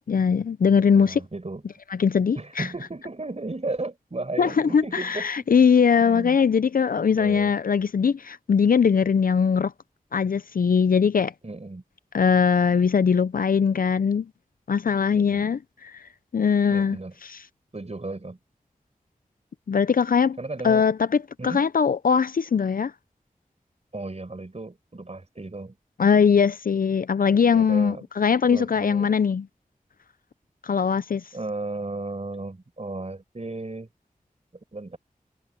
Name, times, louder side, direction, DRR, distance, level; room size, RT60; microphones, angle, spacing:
voice 1, 0.0-1.2 1.9-2.7 4.4-9.7 10.1-11.3 12.1-14.3 14.7-16.0 16.3-17.4 19.7-20.4 20.6-21.0 21.4-22.9 26.0-29.5 30.6-31.2, left 6 dB, 70° left, 0.5 m, -21 dB
voice 2, 0.9-1.6 2.3-5.5 6.0-6.4 7.2-7.5 11.4-11.8 15.1-15.5 16.7-17.1 17.7-18.4 20.4-20.8 21.4-21.6 23.9-25.7 27.5-28.0 28.4-29.1 31.3-33.9 34.7-35.0, right 2 dB, 45° right, 5.1 m, -34 dB
wide cardioid pair, 60°, 15 cm